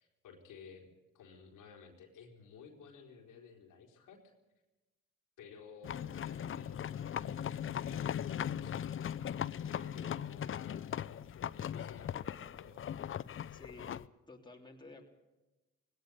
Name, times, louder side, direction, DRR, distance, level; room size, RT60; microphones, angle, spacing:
voice 1, 0.0-4.3 5.4-12.8 13.2-13.3, left 6 dB, 85° left, 1 dB, 4.1 m, -55 dB
sound 1, 5.8-14.1, left 9 dB, 45° left, 0.6 m, -39 dB
voice 2, 13.5-14.0 14.3-15.1, left 2 dB, 15° left, 0 dB, 3.5 m, -52 dB
18.5 x 17.5 x 8.0 m, 1.1 s
cardioid pair, 90°, 30 cm